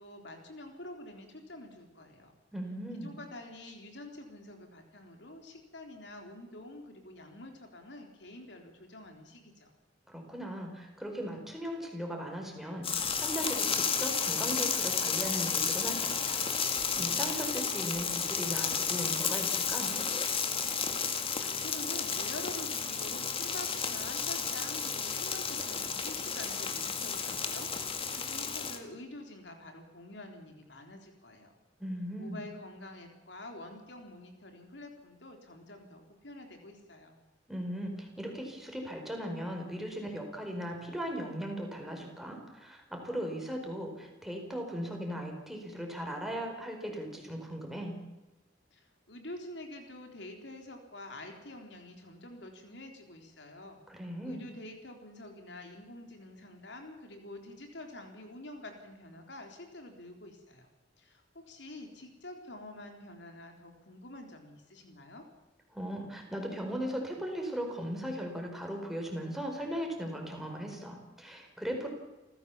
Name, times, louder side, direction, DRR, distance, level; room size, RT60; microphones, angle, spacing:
voice 1, 0.0-2.3 3.0-9.7 21.4-31.5 32.2-37.2 48.7-53.8 54.2-60.7 61.0-65.3, left 1 dB, 70° left, 3 dB, 4.0 m, -47 dB
voice 2, 2.5-3.1 10.1-16.4 16.7-19.9 31.8-32.4 37.5-47.9 53.9-54.4 65.7-71.9, equal, ahead, 2 dB, 4.7 m, -38 dB
sound 1, 12.8-28.8, left 6 dB, 30° left, 2.1 m, -32 dB
29.5 x 15.0 x 7.2 m, 1.1 s
head